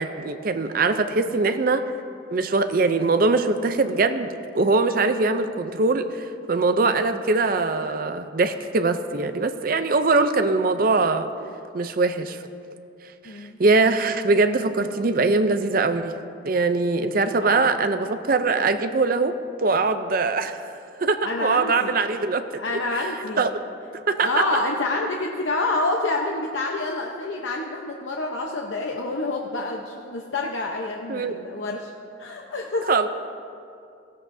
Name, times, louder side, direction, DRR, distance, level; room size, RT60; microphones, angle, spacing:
voice 1, 0.0-1.8 2.3-11.3 11.7-12.4 13.2-16.1 16.4-22.6 23.4-23.5 23.9-24.4 31.1-31.4 32.9-33.1, right 3 dB, 45° right, 9 dB, 0.5 m, -22 dB
voice 2, 17.4-17.7 21.2-21.9 22.6-23.4 24.2-31.9 32.2-32.9, left 2 dB, 75° left, 0 dB, 0.8 m, -28 dB
17.0 x 15.5 x 2.7 m, 2.4 s
head